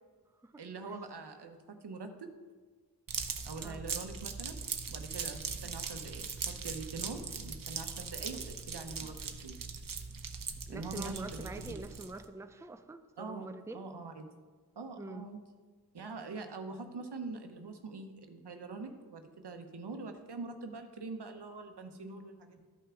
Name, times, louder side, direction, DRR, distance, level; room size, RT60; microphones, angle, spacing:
voice 1, 0.6-2.3 3.4-4.6 4.9-9.2 9.4-9.6 10.7-11.5 11.8-11.9 13.2-14.3 14.8-15.4 15.9-22.7, right 3 dB, 80° right, 6 dB, 0.9 m, -44 dB
sound 1, 3.1-12.2, right 5 dB, 55° right, 0.7 m, -40 dB
voice 2, 10.7-13.9 15.0-15.3, right 2 dB, 5° right, 8 dB, 0.5 m, -45 dB
13.0 x 5.7 x 3.7 m, 1.5 s
wide cardioid pair, 55°, 39 cm